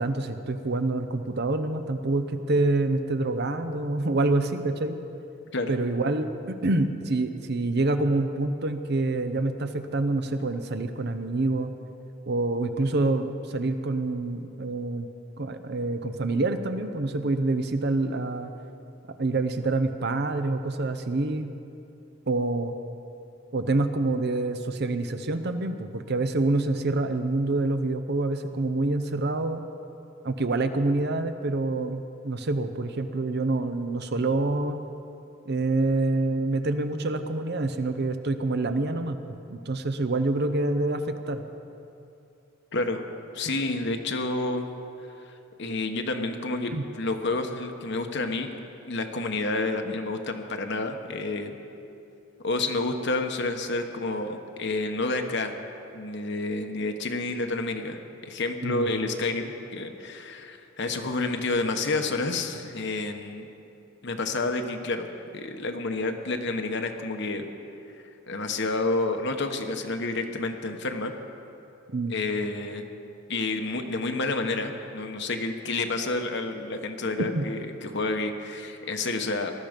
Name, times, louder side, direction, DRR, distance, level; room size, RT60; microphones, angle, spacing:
voice 1, 0.0-5.0 5.7-11.7 12.3-15.1 15.4-18.5 19.2-21.5 22.3-22.7 23.5-29.6 30.2-34.8 35.5-41.4 46.7-46.8 58.6-58.9 71.9-72.2 77.4-77.5, right 2 dB, 55° right, 9 dB, 0.8 m, -27 dB
voice 2, 42.7-43.1 43.3-44.7 45.2-45.3 45.6-48.5 48.8-51.6 52.4-55.5 55.9-63.5 64.0-65.1 65.3-67.4 68.3-71.1 72.1-72.9 73.3-79.5, left 2 dB, 60° left, 5 dB, 1.2 m, -29 dB
19.0 x 12.5 x 5.2 m, 2.7 s
head